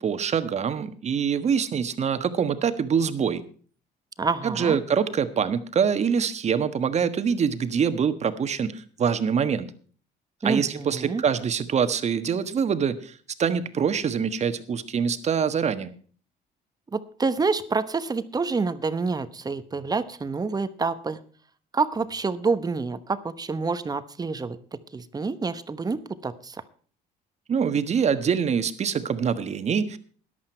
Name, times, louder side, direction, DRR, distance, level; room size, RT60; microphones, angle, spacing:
voice 1, 0.0-3.4 4.4-9.7 10.4-13.1 13.4-15.9 27.5-30.0, right 7 dB, 40° right, 11 dB, 1.4 m, -25 dB
voice 2, 4.2-4.8 10.4-11.2 16.9-21.2 21.7-24.6 24.9-26.6, right 4 dB, 20° right, 12 dB, 1.1 m, -27 dB
14.0 x 11.5 x 4.5 m, 0.43 s
cardioid pair, 110°, 17 cm